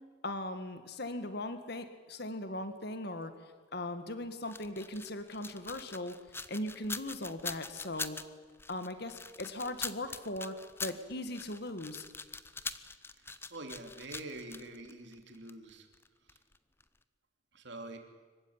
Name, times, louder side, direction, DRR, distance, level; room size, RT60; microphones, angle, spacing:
voice 1, 0.2-3.4 3.7-6.2 6.5-8.2 8.7-12.1, left 1 dB, 55° left, 10 dB, 1.9 m, -39 dB
sound 1, 4.5-16.6 16.8-16.9, left 4 dB, 10° left, 0.7 m, -43 dB
voice 2, 13.5-15.9 17.5-18.0, right 2 dB, 65° right, 4 dB, 3.0 m, -45 dB
25.0 x 15.5 x 9.7 m, 1.5 s
head